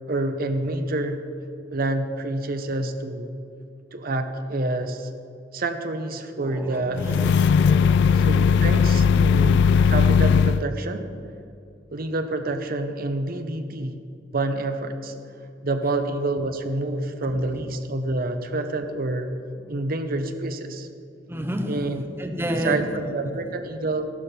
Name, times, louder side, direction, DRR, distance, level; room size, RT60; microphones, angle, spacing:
voice 1, 0.1-1.2 1.7-3.3 3.9-5.1 5.5-7.5 8.3-11.1 11.9-14.0 14.3-15.1 15.6-19.3 19.7-20.9 21.7-22.0 22.6-24.1, right 2 dB, 50° right, 7 dB, 0.9 m, -28 dB
voice 2, 6.2-8.6 17.2-17.7 19.7-19.9 21.3-23.4, equal, 15° right, 5 dB, 1.0 m, -32 dB
sound 1, 7.0-10.6, left 6 dB, 65° left, 0.3 m, -18 dB
15.0 x 12.0 x 4.4 m, 2.5 s
head